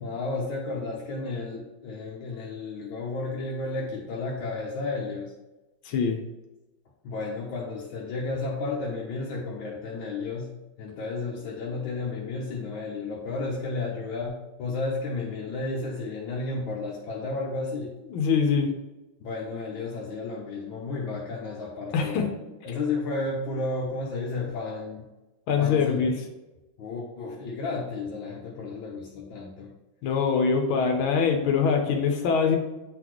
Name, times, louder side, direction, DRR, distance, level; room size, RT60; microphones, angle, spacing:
voice 1, 0.0-5.3 7.0-17.9 19.2-25.0 25.6-26.1 26.8-29.7, left 3 dB, 75° left, -3 dB, 1.6 m, -32 dB
voice 2, 5.9-6.2 18.1-18.7 21.9-22.3 25.5-26.2 30.0-32.6, left 6 dB, 90° left, 3 dB, 1.6 m, -23 dB
9.3 x 4.0 x 3.0 m, 1.0 s
omnidirectional pair, 2.2 m